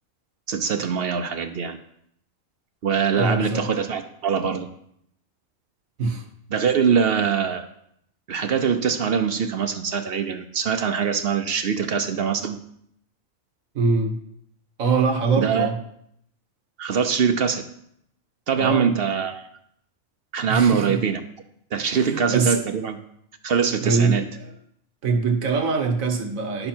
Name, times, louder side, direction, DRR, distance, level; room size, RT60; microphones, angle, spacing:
voice 1, 0.5-1.8 2.8-4.7 6.5-7.6 8.3-12.6 15.4-15.7 16.8-17.6 18.5-19.5 20.3-21.2 21.7-23.0 23.4-24.2, right 6 dB, 55° right, 8 dB, 0.8 m, -23 dB
voice 2, 3.1-3.6 6.0-6.3 13.7-14.2 14.8-15.7 18.6-18.9 20.5-21.0 22.3-22.6 23.8-24.5 25.0-26.7, right 4 dB, 85° right, 5 dB, 1.5 m, -23 dB
10.5 x 6.7 x 4.4 m, 0.72 s
omnidirectional pair, 1.4 m